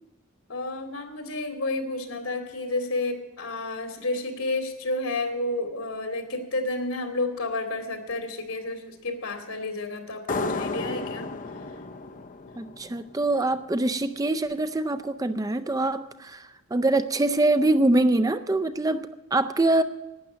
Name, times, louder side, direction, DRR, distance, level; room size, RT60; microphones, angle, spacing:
voice 1, 0.5-11.3 11.7-11.8, left 2 dB, 75° left, 6 dB, 2.3 m, -31 dB
sound 1, 10.3-13.6, left 3 dB, 35° left, 0.6 m, -33 dB
voice 2, 12.6-19.8, right 2 dB, 15° right, 11 dB, 0.5 m, -24 dB
12.0 x 9.7 x 8.9 m, 1.1 s
head